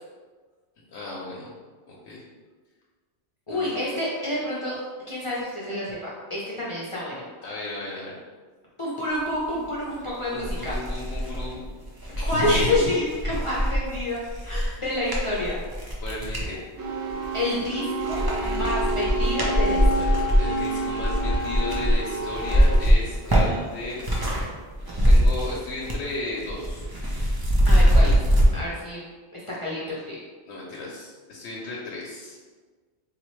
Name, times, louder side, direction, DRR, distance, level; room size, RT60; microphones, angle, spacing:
voice 1, 0.8-1.5 1.9-2.2 3.5-3.8 7.4-8.2 10.0-11.7 12.2-12.7 16.0-16.6 20.4-24.0 24.8-26.9 30.5-32.4, left 2 dB, 85° left, -4 dB, 0.9 m, -35 dB
voice 2, 3.5-4.7 5.1-7.3 8.8-10.7 12.2-15.6 17.3-20.1 27.7-28.2 28.5-29.0 29.3-30.2, left 1 dB, 35° left, -7 dB, 0.6 m, -28 dB
sound 1, 9.8-9.9 10.4-16.5 17.1-17.7 18.0-24.4 24.7-26.1 26.4-28.5, equal, 30° right, 0.5 m, -22 dB
sound 2, 16.8-22.8, right 1 dB, 85° right, 1.0 m, -29 dB
4.1 x 2.4 x 3.0 m, 1.4 s
omnidirectional pair, 1.1 m